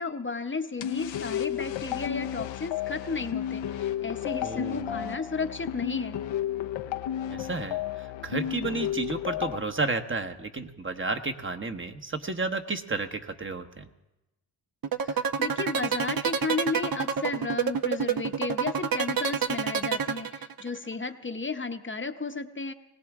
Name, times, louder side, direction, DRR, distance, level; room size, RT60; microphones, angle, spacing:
voice 1, 0.0-6.2 15.0-22.7, left 4 dB, 25° left, 8 dB, 0.9 m, -33 dB
sound 1, 0.8-9.6, left 11 dB, 80° left, 0.7 m, -32 dB
voice 2, 4.4-5.1 7.3-13.9, right 3 dB, 25° right, 7 dB, 1.1 m, -32 dB
sound 2, 14.8-20.8, right 7 dB, 50° right, 0.9 m, -27 dB
20.5 x 17.5 x 3.6 m, 0.97 s
cardioid pair, 70°, 45 cm